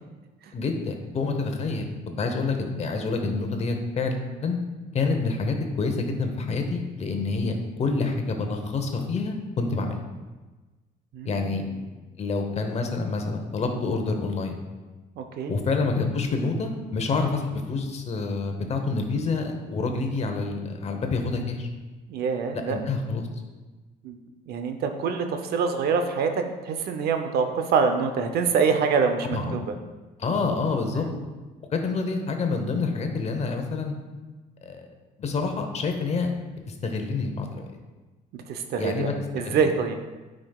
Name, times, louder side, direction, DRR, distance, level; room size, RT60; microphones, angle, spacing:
voice 1, 0.5-1.8 2.2-4.6 4.9-10.0 11.2-11.6 12.2-14.6 15.5-21.7 22.6-23.3 29.2-29.7 30.2-31.1 31.7-33.9 34.6-34.9 35.2-36.3 36.7-37.7 38.8-39.1 39.4-39.6, left 3 dB, 40° left, 4 dB, 0.9 m, -27 dB
voice 2, 11.1-11.7 15.2-15.6 22.1-22.8 24.0-24.2 24.5-29.7 30.8-31.2 38.3-39.9, right 5 dB, 70° right, 6 dB, 0.7 m, -26 dB
9.5 x 5.1 x 2.3 m, 1.2 s
cardioid pair, 110°, 17 cm